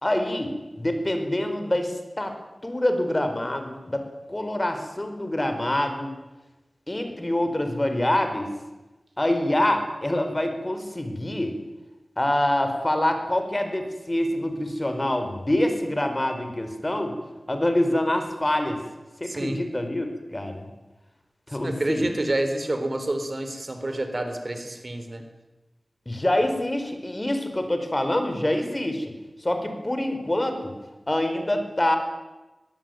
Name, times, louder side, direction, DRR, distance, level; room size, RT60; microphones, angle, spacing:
voice 1, 0.0-2.3 2.6-6.1 6.9-8.5 9.2-11.6 12.2-17.1 17.5-18.8 19.2-20.6 21.5-22.1 26.0-29.1 29.4-30.7 31.1-32.0, left 1 dB, 30° left, 6 dB, 5.0 m, -25 dB
voice 2, 19.2-19.6 21.6-25.2, right 1 dB, 45° right, 7 dB, 4.3 m, -28 dB
21.5 x 21.5 x 9.5 m, 1.1 s
wide cardioid pair, 45°, 0 cm